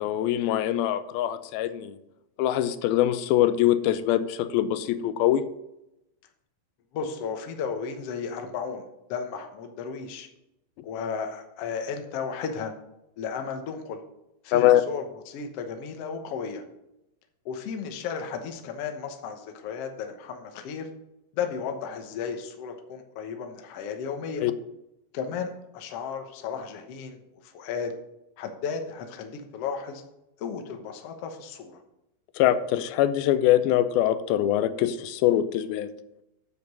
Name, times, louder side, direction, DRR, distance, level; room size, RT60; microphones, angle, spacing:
voice 1, 0.0-2.0 2.4-5.4 14.5-14.8 24.4-24.5 32.4-35.9, left 12 dB, 85° left, 12 dB, 2.5 m, -23 dB
voice 2, 6.9-8.8 9.1-10.3 10.8-12.7 13.2-14.0 14.4-16.6 17.4-20.9 21.3-24.5 25.1-27.9 28.4-30.0 30.4-31.8, left 6 dB, 65° left, 5 dB, 1.5 m, -34 dB
9.7 x 6.9 x 5.4 m, 0.88 s
omnidirectional pair, 4.2 m